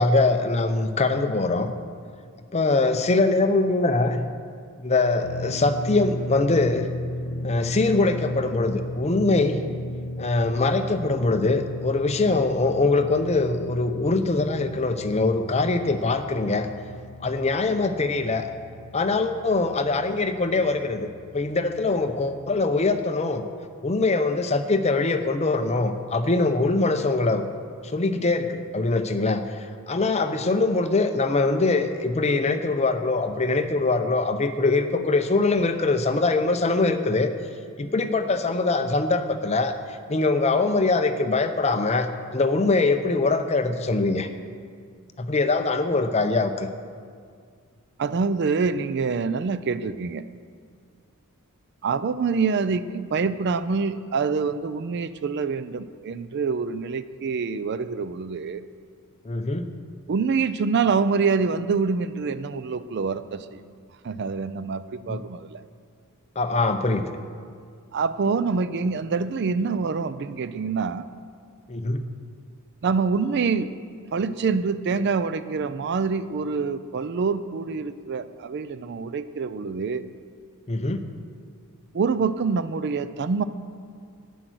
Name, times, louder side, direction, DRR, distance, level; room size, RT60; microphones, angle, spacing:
voice 1, 0.0-1.7 2.5-4.3 4.8-6.9 7.4-9.6 10.2-16.7 17.2-18.5 18.9-21.1 21.3-23.4 23.8-27.4 27.9-29.4 29.9-37.3 37.8-39.7 40.1-44.3 45.2-46.7 59.3-59.7 65.1-65.2 66.4-67.1 71.7-72.0 80.7-81.0, left 3 dB, 30° left, 8 dB, 0.6 m, -23 dB
sound 1, 5.2-22.9, left 1 dB, 75° left, 0.5 m, -35 dB
voice 2, 48.0-50.2 51.8-58.6 60.1-63.6 64.0-65.6 67.9-71.1 72.8-73.7 74.1-80.0 81.9-83.4, right 5 dB, 50° right, 14 dB, 0.4 m, -26 dB
11.5 x 9.2 x 6.2 m, 2.1 s
head